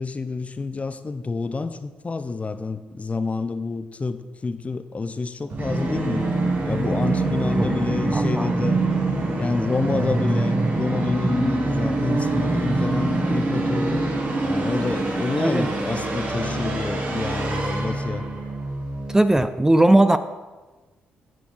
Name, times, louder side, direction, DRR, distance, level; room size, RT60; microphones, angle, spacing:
voice 1, 0.0-6.3 6.6-8.8 9.4-14.0 14.4-18.3, left 3 dB, 30° left, 11 dB, 0.7 m, -28 dB
Musical instrument, 5.5-19.2, right 2 dB, 40° right, 1.6 m, -25 dB
voice 2, 8.1-8.5 15.4-15.7 19.1-20.2, right 1 dB, 10° right, 11 dB, 0.5 m, -18 dB
15.0 x 7.7 x 3.4 m, 1.2 s
figure-of-eight pair, 40°, 5 cm